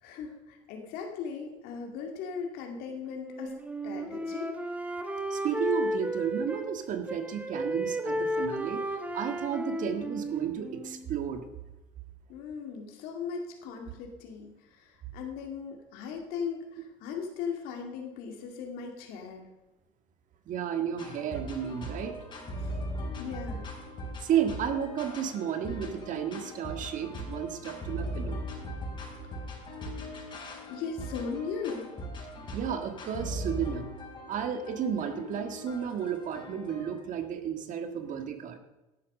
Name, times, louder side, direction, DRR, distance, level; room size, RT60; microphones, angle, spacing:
voice 1, 0.0-3.5 3.8-4.5 12.3-19.5 22.6-22.8 23.2-23.6 30.7-31.9, left 6 dB, 70° left, 2 dB, 2.1 m, -38 dB
Wind instrument woodwind instrument, 3.2-6.7 7.1-11.1, equal, 10° right, 1.5 m, -33 dB
voice 2, 5.3-11.4 20.5-22.2 24.2-28.4 32.5-33.9 34.3-38.6, right 9 dB, 50° right, 7 dB, 1.7 m, -32 dB
sound 1, 21.0-37.0, equal, 30° left, 4.9 m, -39 dB
11.5 x 8.6 x 6.6 m, 1.1 s
supercardioid pair, 95°, 16 cm